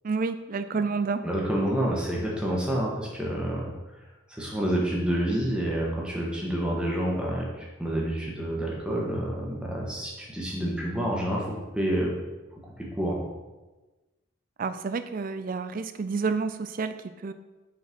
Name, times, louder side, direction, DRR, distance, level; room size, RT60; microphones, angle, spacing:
voice 1, 0.0-1.3 14.6-17.3, right 4 dB, 40° right, 12 dB, 0.4 m, -29 dB
voice 2, 1.2-3.7 4.3-12.1 12.8-13.2, right 1 dB, 5° right, -3 dB, 1.3 m, -28 dB
5.8 x 4.6 x 6.0 m, 1.2 s
head